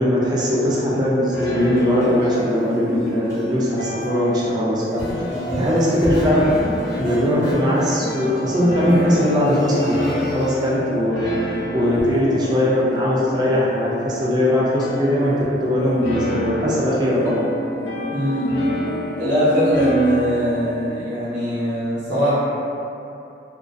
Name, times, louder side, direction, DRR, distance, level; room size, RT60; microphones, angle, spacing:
voice 1, 0.0-5.2 5.6-6.5 6.9-15.3 15.6-17.5, left 1 dB, 20° right, -6 dB, 0.3 m, -20 dB
sound 1, 1.3-20.9, equal, 90° left, 0.5 m, -28 dB
sound 2, 1.6-3.5 3.8-4.2 4.6-10.7, equal, 15° left, 0.8 m, -31 dB
voice 2, 5.3-5.6 18.1-18.5 19.1-22.4, equal, 75° right, -10 dB, 0.9 m, -21 dB
2.4 x 2.2 x 2.3 m, 2.7 s
head